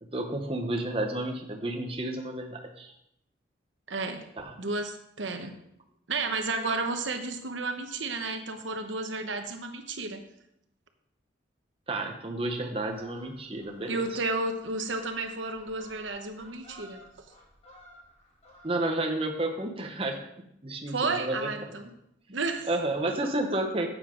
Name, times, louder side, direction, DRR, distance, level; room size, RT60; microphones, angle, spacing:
voice 1, 0.0-2.9 4.4-4.5 11.9-14.2 18.6-21.5 22.7-23.9, right 1 dB, 30° right, 3 dB, 0.9 m, -31 dB
voice 2, 3.9-4.2 4.6-5.6 6.1-10.2 13.9-17.0 20.9-21.9 22.3-22.7 23.1-23.2, right 3 dB, 80° right, 6 dB, 1.0 m, -32 dB
Fowl, 12.7-19.1 19.4-19.6, equal, 30° left, 2.4 m, -54 dB
9.8 x 7.8 x 3.8 m, 0.77 s
head